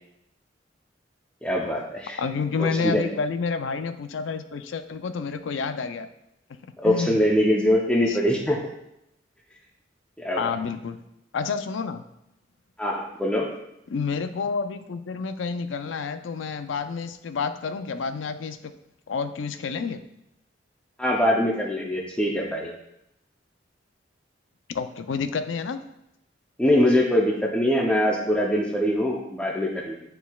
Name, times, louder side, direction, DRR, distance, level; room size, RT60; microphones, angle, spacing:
voice 1, 1.4-2.2 2.6-3.1 6.8-8.6 10.2-10.4 12.8-13.5 21.0-22.7 26.6-30.0, left 1 dB, 5° left, -3 dB, 0.6 m, -23 dB
voice 2, 2.2-6.1 6.8-7.2 8.1-8.2 10.4-11.0 11.3-12.0 13.9-18.7 19.1-20.0 24.7-25.8, left 5 dB, 90° left, 9 dB, 0.5 m, -29 dB
9.2 x 4.5 x 2.3 m, 0.83 s
head